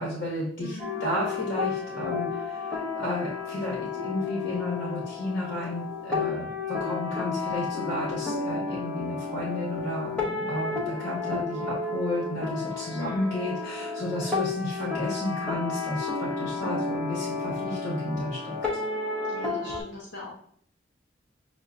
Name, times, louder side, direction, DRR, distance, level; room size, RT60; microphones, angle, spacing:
voice 1, 0.0-18.6, left 1 dB, 55° left, -5 dB, 1.1 m, -32 dB
voice 2, 0.6-1.1 12.9-13.4 19.3-20.3, left 2 dB, 75° left, -3 dB, 0.8 m, -40 dB
sound 1, 0.8-19.8, left 4 dB, 5° left, 0.7 m, -32 dB
6.2 x 2.2 x 2.4 m, 0.62 s
head